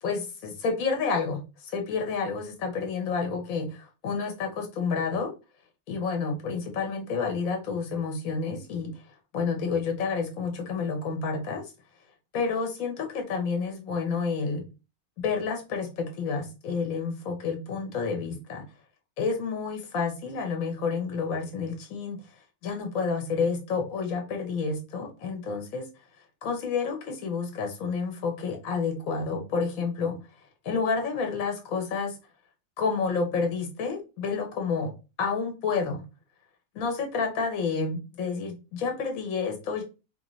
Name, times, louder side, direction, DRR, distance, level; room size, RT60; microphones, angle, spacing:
voice 1, 0.0-5.3 5.9-9.1 9.3-11.6 12.3-14.6 15.2-18.6 19.2-22.2 22.6-25.9 26.4-30.1 30.6-32.1 32.8-34.9 35.2-36.0 36.7-39.8, left 5 dB, 65° left, 3 dB, 1.2 m, -29 dB
4.0 x 2.5 x 3.0 m, 0.29 s
omnidirectional pair, 1.6 m